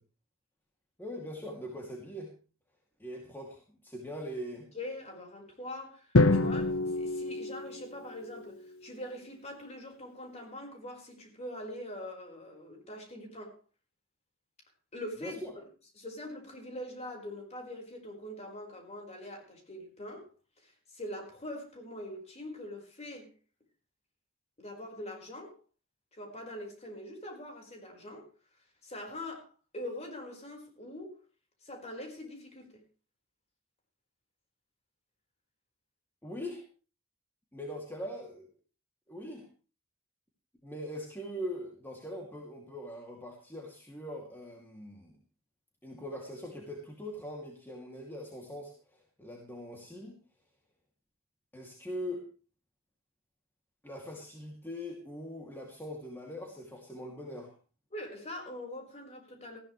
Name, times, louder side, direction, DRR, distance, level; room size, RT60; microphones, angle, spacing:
voice 1, 1.0-2.3 3.0-4.7 15.2-15.5 36.2-36.6 37.5-38.5 39.1-39.5 40.6-45.2 45.8-50.2 51.5-52.3 53.8-57.5, equal, 10° left, 2.7 m, -41 dB
voice 2, 4.7-13.6 14.9-15.6 15.9-20.3 20.6-23.3 24.6-25.5 26.1-28.3 28.8-31.2 31.6-32.7 57.9-59.6, left 1 dB, 30° left, 4.9 m, -43 dB
Drum, 6.1-8.3, left 2 dB, 75° left, 1.1 m, -26 dB
19.0 x 15.0 x 3.3 m
head